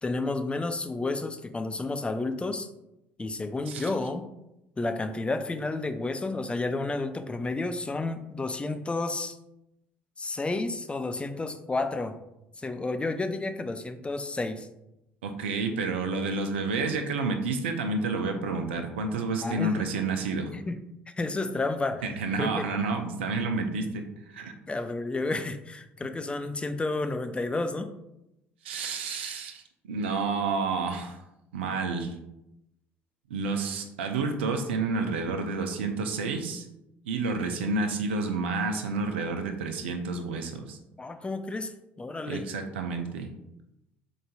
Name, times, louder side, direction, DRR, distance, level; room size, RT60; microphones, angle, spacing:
voice 1, 0.0-2.7 3.2-4.2 4.8-9.4 10.2-12.2 12.6-14.7 19.4-19.8 20.5-20.8 21.2-22.0 22.4-22.7 24.7-27.9 41.0-42.5, left 2 dB, 20° left, 8 dB, 0.5 m, -31 dB
voice 2, 15.2-20.5 22.0-24.5 28.6-31.2 31.5-32.1 33.3-36.6 37.0-40.8 42.3-43.3, right 3 dB, 80° right, 6 dB, 0.5 m, -30 dB
5.1 x 3.9 x 2.3 m, 0.87 s
hypercardioid pair, 55°, 6 cm